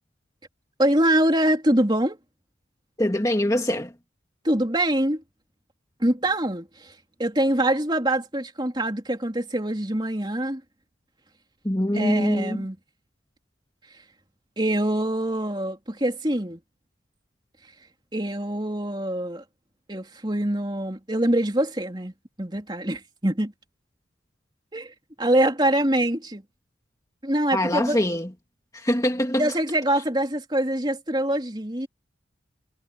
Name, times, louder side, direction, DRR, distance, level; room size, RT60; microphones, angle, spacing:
voice 1, 0.8-2.2 4.4-5.2 6.0-10.6 11.9-12.8 14.6-16.6 18.1-19.4 19.9-22.1 22.4-23.5 24.7-26.4 27.2-28.0 29.4-31.9, right 1 dB, 25° right, 3.4 m, -24 dB
voice 2, 3.0-3.9 11.6-12.6 27.5-28.3 28.7-29.5, left 1 dB, 15° left, 2.1 m, -24 dB
head